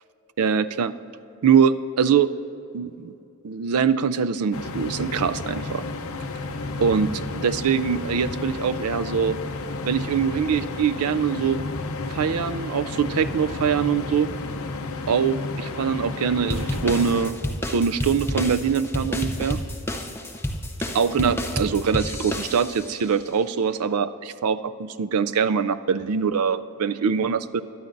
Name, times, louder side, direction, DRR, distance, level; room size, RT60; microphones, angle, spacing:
voice 1, 0.4-0.9 1.4-2.3 2.7-3.1 3.4-5.8 6.8-7.1 7.3-9.4 9.8-11.6 12.1-14.3 15.1-17.4 17.7-19.6 20.9-27.6, right 6 dB, 80° right, 13 dB, 0.4 m, -23 dB
sound 1, 4.5-17.3, left 3 dB, 70° left, 0.8 m, -32 dB
sound 2, 16.5-23.0, left 1 dB, 10° left, 0.7 m, -30 dB
22.5 x 11.0 x 2.6 m, 2.8 s
head